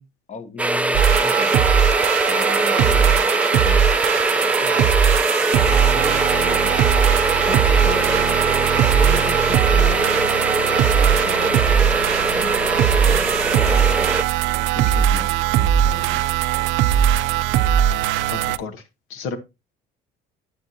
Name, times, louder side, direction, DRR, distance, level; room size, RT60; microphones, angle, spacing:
voice 1, 0.0-1.5 2.3-3.9 5.9-6.8 7.1-8.5 8.9-10.4 11.0-11.8 12.3-12.5 13.0-13.3 13.5-14.3 14.7-15.3 15.6-16.2, left 5 dB, 35° left, 1.1 m, -36 dB
sound 1, 0.6-14.2, right 1 dB, 5° right, 0.5 m, -22 dB
sound 2, 0.9-18.6, right 10 dB, 70° right, 0.6 m, -19 dB
voice 2, 18.3-18.8 19.1-19.4, left 5 dB, 80° left, 1.2 m, -32 dB
8.8 x 8.2 x 2.7 m
supercardioid pair, 75°, 21 cm